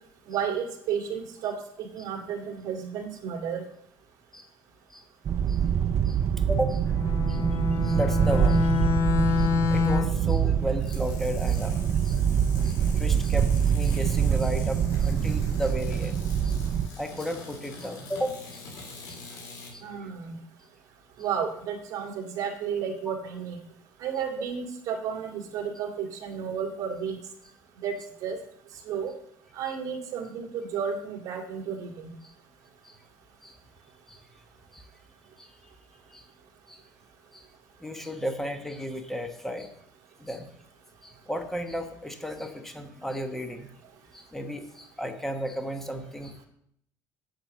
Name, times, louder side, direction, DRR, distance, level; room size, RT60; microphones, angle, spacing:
voice 1, 0.3-3.6 19.8-20.4 21.2-23.6 24.0-27.2 27.8-27.9 28.2-28.4 28.9-29.1 29.5-32.1, right 7 dB, 55° right, 3 dB, 2.1 m, -32 dB
sound 1, 5.2-16.9, right 8 dB, 35° right, 0.4 m, -25 dB
voice 2, 6.5-6.8 7.3-7.4 7.8-8.8 9.4-11.8 12.0-12.2 12.6-16.5 17.0-18.6 19.1-19.2 19.7-19.8 23.1-23.2 24.4-24.5 32.8-32.9 33.4-33.5 34.1-34.2 34.7-34.8 35.4-35.5 36.1-36.2 36.7-36.8 37.3-37.4 37.8-39.7 40.2-40.5 41.0-43.7 44.1-46.5, equal, 5° left, 6 dB, 1.1 m, -34 dB
Bowed string instrument, 6.9-10.3, left 7 dB, 40° left, 0.8 m, -27 dB
sound 2, 10.8-19.7, left 3 dB, 70° left, 3.7 m, -45 dB
8.3 x 7.6 x 6.7 m, 0.70 s
cardioid pair, 145°, 7 cm